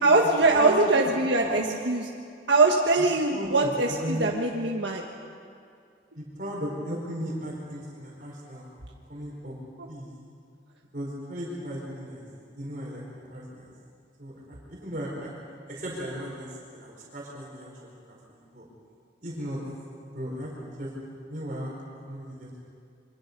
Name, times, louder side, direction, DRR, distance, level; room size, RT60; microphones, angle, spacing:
voice 1, 0.0-2.1 2.5-5.0, right 3 dB, 85° right, 0 dB, 1.6 m, -22 dB
voice 2, 3.3-4.2 6.1-8.7 9.1-9.5 9.9-10.1 10.9-12.3 12.5-13.7 14.2-15.3 15.7-18.7 19.2-19.6 20.1-22.6, equal, 50° right, -4 dB, 4.8 m, -36 dB
27.0 x 24.0 x 5.4 m, 2.3 s
head